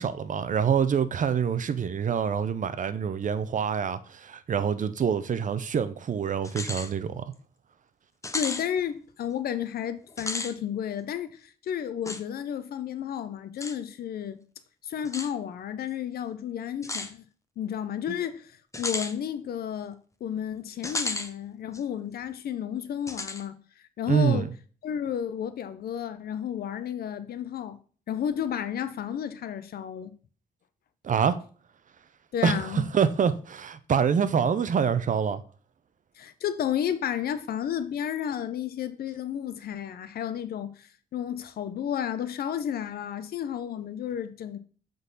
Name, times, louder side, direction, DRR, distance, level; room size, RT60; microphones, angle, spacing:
voice 1, 0.0-7.2 24.1-24.5 31.0-31.4 32.4-35.4, right 7 dB, 55° right, 0.6 m, -26 dB
sound 1, 6.4-6.9 7.3-7.4 8.2-8.7 10.1-10.5 12.0-12.2 13.6-13.8 15.0-15.3 16.8-17.1 18.7-19.1 20.8-21.3 21.7-21.8 23.1-23.4, left 2 dB, 20° left, 0.7 m, -33 dB
voice 2, 8.3-14.4 14.8-17.2 17.6-23.6 24.0-24.5 24.8-27.8 28.1-30.1 32.3-32.8 36.2-44.6, left 9 dB, 90° left, 0.6 m, -32 dB
8.0 x 3.9 x 4.0 m
cardioid pair, 80°, 15 cm